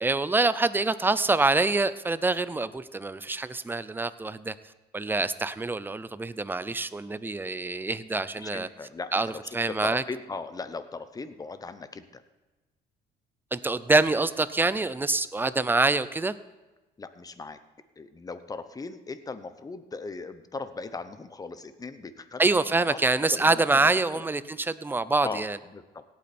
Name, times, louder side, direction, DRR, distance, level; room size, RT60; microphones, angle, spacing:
voice 1, 0.0-4.5 4.9-8.7 9.1-10.0 13.5-16.3 22.4-25.6, right 3 dB, 10° right, 15 dB, 0.5 m, -25 dB
voice 2, 8.4-12.2 17.0-17.6 18.0-24.3 25.2-26.0, left 4 dB, 20° left, 11 dB, 0.9 m, -39 dB
17.5 x 8.6 x 4.4 m, 1.1 s
cardioid pair, 110°, 17 cm